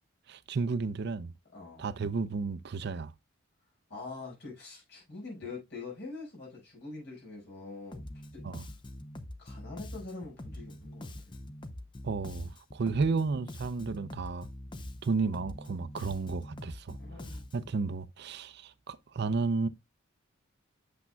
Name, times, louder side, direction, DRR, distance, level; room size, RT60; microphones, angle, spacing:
voice 1, 0.3-1.3 1.8-3.1 8.4-8.7 12.0-14.5 15.0-17.0 17.5-19.7, right 4 dB, 55° right, 0.5 m, -32 dB
voice 2, 1.5-1.9 3.9-8.0 8.3-8.4 9.4-11.3 13.0-13.2 17.0-17.5, left 3 dB, 55° left, 5.1 m, -44 dB
Bass guitar, 7.9-17.8, left 1 dB, 25° left, 0.6 m, -44 dB
8.4 x 7.2 x 2.2 m
head